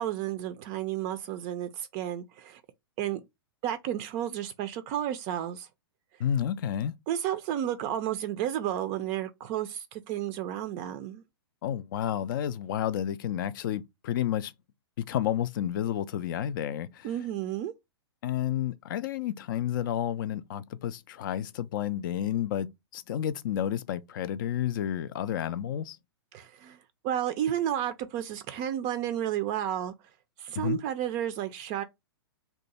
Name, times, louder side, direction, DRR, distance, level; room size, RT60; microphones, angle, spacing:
voice 1, 0.0-2.6 3.0-3.2 3.6-5.7 7.1-11.2 17.0-17.7 26.3-26.8 27.0-29.9 30.4-31.8, right 11 dB, 35° right, 0.4 m, -32 dB
voice 2, 6.2-6.9 11.6-14.5 15.0-17.1 18.2-26.0 30.6-30.8, left 10 dB, 50° left, 0.4 m, -31 dB
2.7 x 2.2 x 4.0 m
hypercardioid pair, 115°, 14 cm